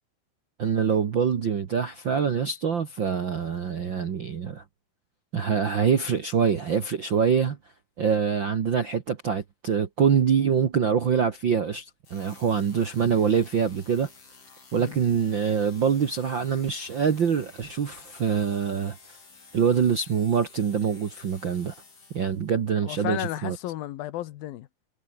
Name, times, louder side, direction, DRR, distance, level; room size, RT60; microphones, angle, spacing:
voice 1, 0.6-4.6 5.3-7.6 8.0-14.1 14.7-19.2 19.5-21.7 22.1-23.6, right 7 dB, 55° right, 1.3 m, -25 dB
sound 1, 12.0-22.6, left 4 dB, 60° left, 8.7 m, -52 dB
voice 2, 22.8-24.7, left 14 dB, 75° left, 2.9 m, -33 dB
omnidirectional pair, 4.3 m